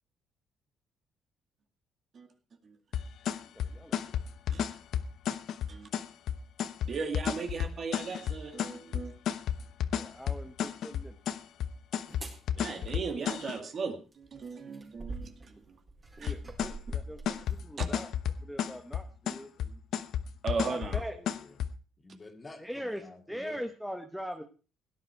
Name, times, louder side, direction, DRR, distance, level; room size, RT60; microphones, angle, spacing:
sound 1, 2.9-13.6 16.3-21.7, left 9 dB, 65° left, 1.0 m, -32 dB
voice 1, 3.5-4.2 4.5-4.7 10.0-11.1 16.2-18.1 18.4-19.8 20.7-21.2 22.6-23.0 23.3-24.4, equal, ahead, 5 dB, 1.1 m, -41 dB
voice 2, 6.8-9.1 12.6-15.8 16.2-16.3 17.8-17.9 20.4-21.0, right 4 dB, 45° right, 6 dB, 2.3 m, -37 dB
sound 2, 12.1-12.4 14.1-17.6 18.3-18.4, right 3 dB, 20° right, 4.3 m, -45 dB
voice 3, 21.1-21.6 22.0-23.6, left 3 dB, 20° left, 4 dB, 2.3 m, -49 dB
17.0 x 11.0 x 4.6 m, 0.36 s
cardioid pair, 130°, 0 cm